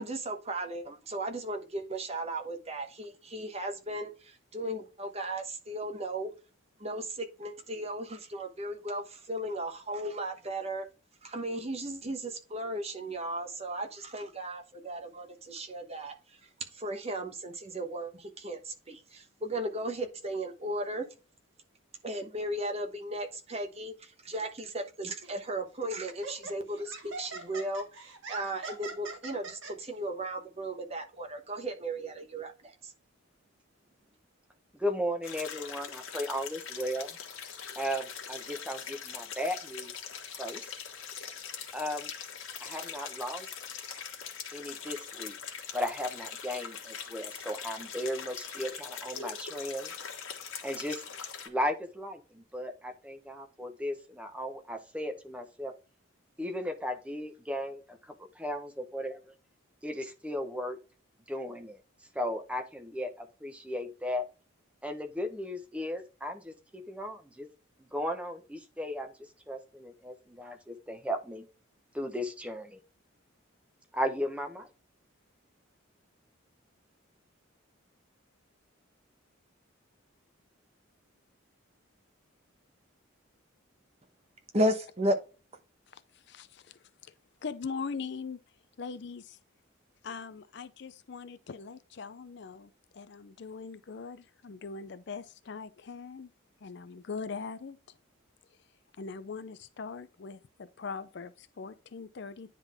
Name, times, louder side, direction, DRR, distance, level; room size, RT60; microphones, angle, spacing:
voice 1, 0.0-6.3 6.8-10.9 11.2-21.1 22.0-32.9 84.5-85.2, right 1 dB, 30° right, 1.0 m, -35 dB
Laughter, 25.2-25.4 26.1-29.7, right 3 dB, 65° right, 1.6 m, -42 dB
voice 2, 34.7-37.2 37.8-39.9 40.4-40.7 41.7-42.1 42.6-43.5 44.5-45.3 45.7-49.9 50.6-51.0 51.5-55.7 56.4-59.3 59.8-60.8 61.3-61.8 62.1-64.3 64.8-67.5 67.9-71.4 71.9-72.8 73.9-74.7, equal, 5° right, 0.9 m, -36 dB
sound 1, 35.2-51.5, left 7 dB, 80° left, 1.4 m, -42 dB
voice 3, 85.9-87.1 87.4-88.4 88.8-89.4 90.0-96.3 96.6-97.8 99.0-102.6, left 5 dB, 55° left, 0.5 m, -41 dB
9.8 x 3.7 x 3.5 m
head